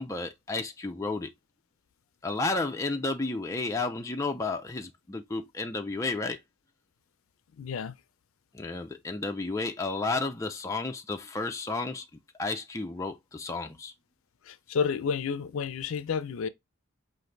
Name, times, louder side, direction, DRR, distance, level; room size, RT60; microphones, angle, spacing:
voice 1, 0.0-1.3 2.2-6.4 8.5-12.1 12.4-13.9, left 3 dB, 15° left, 0.4 m, -32 dB
voice 2, 7.6-7.9 14.4-16.5, left 6 dB, 80° left, 0.4 m, -30 dB
5.0 x 2.6 x 3.1 m
head